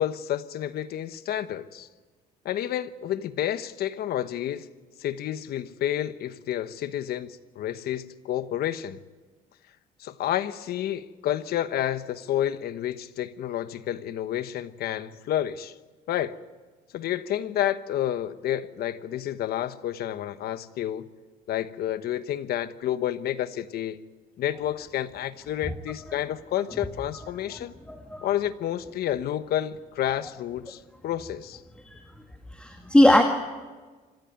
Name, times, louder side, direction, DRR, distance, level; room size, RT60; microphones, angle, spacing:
voice 1, 0.0-1.9 2.4-4.7 5.0-9.0 10.0-15.7 16.1-16.3 16.9-21.1 21.5-24.0 24.4-27.7 28.2-31.6, left 11 dB, 65° left, 1.2 m, -30 dB
voice 2, 27.9-28.3 31.8-32.0 32.5-33.2, left 1 dB, 5° left, 1.8 m, -20 dB
26.0 x 16.0 x 9.4 m
cardioid pair, 110°, 17 cm